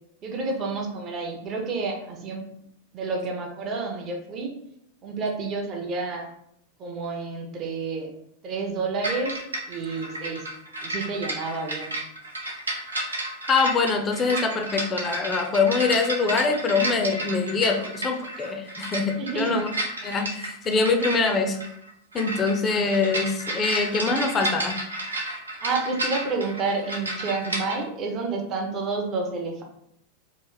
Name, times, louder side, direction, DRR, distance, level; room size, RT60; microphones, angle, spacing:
voice 1, 0.2-2.4 2.9-4.5 5.0-6.3 6.8-8.1 8.4-9.4 9.7-10.4 10.8-11.9 19.2-19.6 25.6-29.6, right 3 dB, 30° right, 1 dB, 0.6 m, -29 dB
sound 1, 9.0-27.8, right 1 dB, 75° right, 0.6 m, -32 dB
voice 2, 13.5-19.7 20.0-21.6 22.1-24.8, left 4 dB, 25° left, 4 dB, 0.5 m, -24 dB
3.1 x 2.4 x 3.9 m, 0.74 s
figure-of-eight pair, 90°, 0 cm